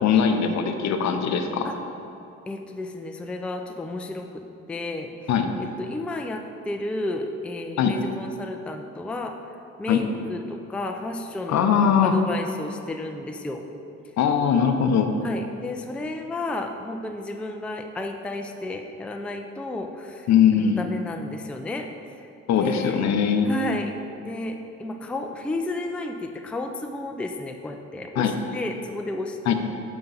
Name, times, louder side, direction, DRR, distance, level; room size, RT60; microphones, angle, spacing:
voice 1, 0.0-1.7 5.3-5.5 7.8-7.9 9.9-10.0 11.5-12.1 14.2-15.1 20.3-20.8 22.5-23.5 28.2-28.3 29.5-29.6, left 7 dB, 65° left, 6 dB, 0.6 m, -20 dB
voice 2, 2.5-5.3 5.6-9.4 9.8-13.6 15.2-21.9 22.2-23.0 23.4-29.5, left 2 dB, 5° left, 4 dB, 0.3 m, -32 dB
5.8 x 5.3 x 3.9 m, 2.7 s
cardioid pair, 90°, 30 cm